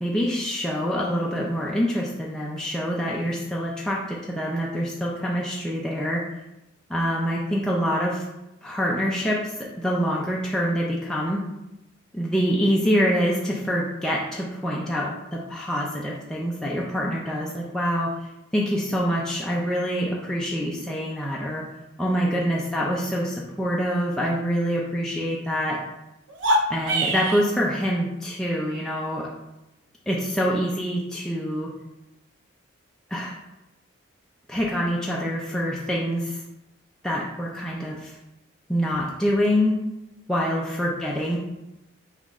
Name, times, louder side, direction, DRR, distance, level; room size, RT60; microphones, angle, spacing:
voice 1, 0.0-6.2 6.9-8.2 8.6-11.4 12.1-18.1 18.5-21.6 22.0-25.8 26.7-29.3 30.1-31.7 33.1-33.3 34.5-36.4 37.0-38.1 38.7-39.8 40.3-41.4, equal, 5° left, -4 dB, 0.4 m, -25 dB
sound 1, 26.3-27.5, right 1 dB, 65° right, 0.6 m, -23 dB
5.6 x 2.4 x 3.6 m, 0.93 s
head